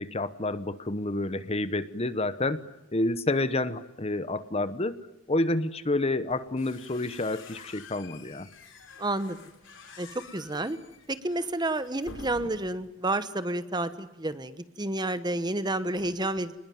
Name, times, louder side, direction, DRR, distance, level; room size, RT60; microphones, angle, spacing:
voice 1, 0.0-2.6 2.9-5.0 5.3-8.5, left 2 dB, 30° left, 14 dB, 1.0 m, -29 dB
sound 1, 6.3-12.9, left 4 dB, 65° left, 3.6 m, -49 dB
voice 2, 9.0-9.4 10.0-10.8 11.1-16.6, right 2 dB, 20° right, 13 dB, 1.1 m, -30 dB
29.0 x 20.5 x 9.3 m, 0.97 s
head